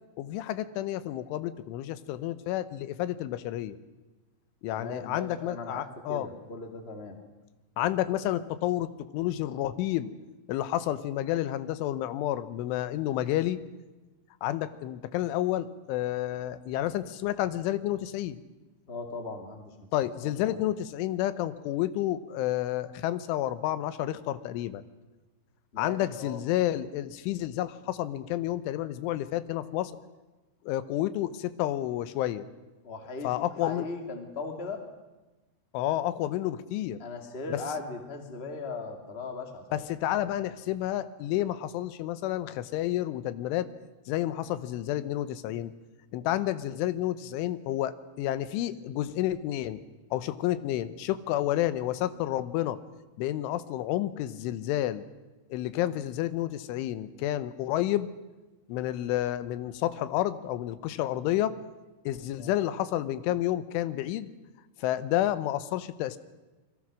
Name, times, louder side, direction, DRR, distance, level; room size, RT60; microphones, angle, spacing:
voice 1, 0.2-3.8 4.6-6.3 7.8-10.1 10.5-13.6 14.4-18.4 19.9-24.8 25.8-29.9 30.6-32.5 33.2-33.9 35.7-37.0 37.5-37.6 39.7-43.7 44.1-45.7 46.1-49.8 50.1-52.8 53.2-55.0 55.5-58.1 58.7-61.6 62.1-64.3 64.8-66.2, left 13 dB, 85° left, 13 dB, 3.4 m, -30 dB
voice 2, 4.7-5.8 6.1-7.1 18.9-19.7 20.0-20.6 25.7-26.4 32.8-34.8 37.0-39.8 62.4-62.6, left 3 dB, 25° left, 4 dB, 1.5 m, -38 dB
27.0 x 23.0 x 6.3 m, 1.1 s
omnidirectional pair, 5.5 m